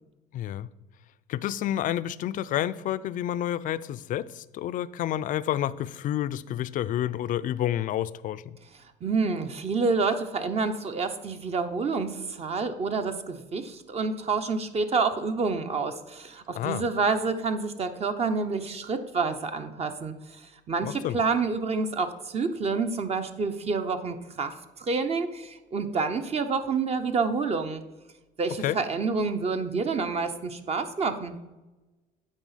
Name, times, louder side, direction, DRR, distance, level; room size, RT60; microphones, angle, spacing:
voice 1, 0.3-0.7 1.3-8.6 16.5-16.8 20.8-21.2 28.6-28.8, left 11 dB, 55° left, 0.4 m, -29 dB
voice 2, 9.0-27.8 28.4-31.4, right 4 dB, 40° right, 0.8 m, -28 dB
9.1 x 4.1 x 5.6 m
cardioid pair, 95°, 17 cm